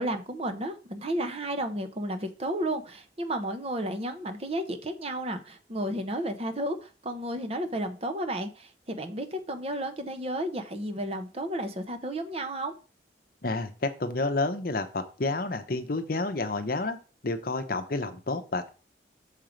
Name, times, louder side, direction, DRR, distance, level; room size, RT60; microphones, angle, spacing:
voice 1, 0.0-12.7, right 1 dB, 30° right, 7 dB, 0.8 m, -32 dB
voice 2, 13.4-17.0 17.2-18.7, left 2 dB, 50° left, 8 dB, 0.8 m, -30 dB
6.5 x 4.6 x 5.1 m, 0.35 s
head